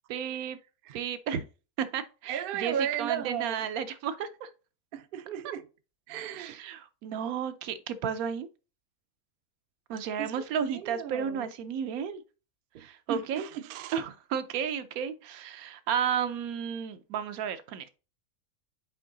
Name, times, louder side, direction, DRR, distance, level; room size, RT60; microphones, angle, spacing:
voice 1, 0.1-0.6 0.9-1.4 1.8-4.5 6.4-8.5 9.9-12.2 12.8-13.5 13.9-17.9, right 8 dB, 80° right, 1.1 m, -33 dB
voice 2, 2.3-3.7 4.9-5.7 6.1-6.6 10.2-11.5 12.7-14.0, right 9 dB, 65° right, 0.5 m, -35 dB
5.6 x 4.6 x 3.8 m
omnidirectional pair, 1.5 m